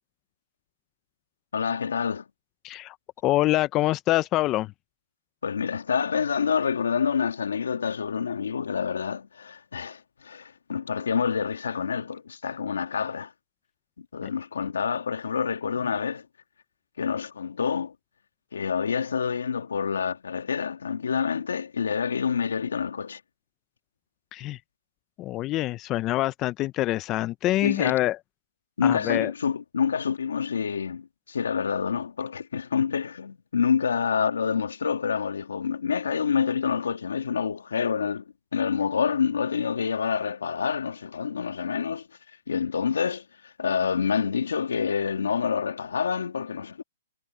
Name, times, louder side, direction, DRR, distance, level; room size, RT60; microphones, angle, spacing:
voice 1, 1.5-2.2 5.4-13.3 14.0-16.3 17.0-17.9 18.5-23.2 27.6-28.0 28.8-42.1 42.5-46.8, left 6 dB, 85° left, 2.3 m, -27 dB
voice 2, 2.6-3.0 3.2-4.7 14.2-14.3 24.3-24.6 25.2-28.2 28.8-29.3, left 16 dB, 30° left, 0.7 m, -25 dB
hypercardioid pair, 140°, 0 cm